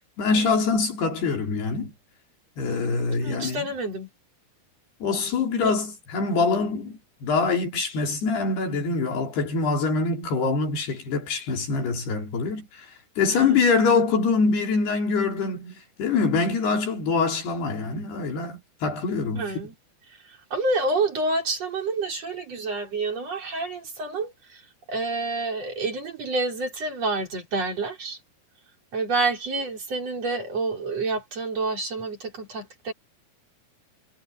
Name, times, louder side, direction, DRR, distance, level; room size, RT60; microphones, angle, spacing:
voice 1, 0.2-1.9 2.6-3.7 5.0-19.7, left 4 dB, 75° left, 6.0 m, -24 dB
voice 2, 3.2-4.1 5.6-5.8 13.3-13.6 19.3-19.7 20.3-24.6 24.9-28.2 28.9-32.9, right 3 dB, 40° right, 5.7 m, -28 dB
omnidirectional pair, 4.7 m